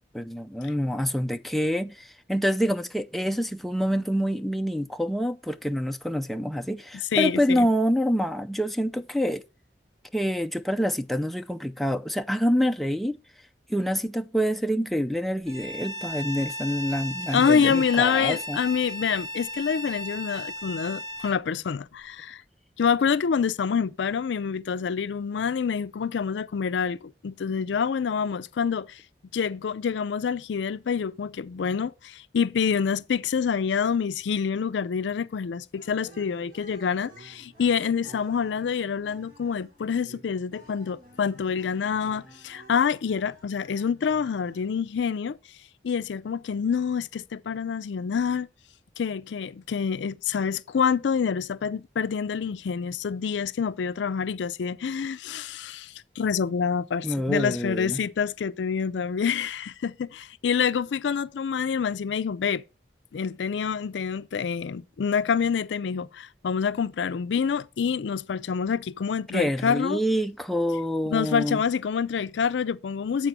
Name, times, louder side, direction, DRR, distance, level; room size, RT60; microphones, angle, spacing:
voice 1, 0.1-9.4 10.1-13.2 13.7-18.6 57.0-58.0 69.3-71.6, equal, ahead, 0.4 m, -26 dB
voice 2, 7.1-7.7 17.3-22.4 22.8-29.0 29.3-45.4 45.8-48.5 49.0-62.6 63.1-70.0 71.1-73.3, left 6 dB, 85° left, 0.4 m, -27 dB
Bowed string instrument, 15.5-21.4, left 1 dB, 25° right, 1.2 m, -36 dB
sound 1, 35.7-45.0, right 2 dB, 50° right, 2.3 m, -52 dB
8.0 x 4.3 x 5.9 m
head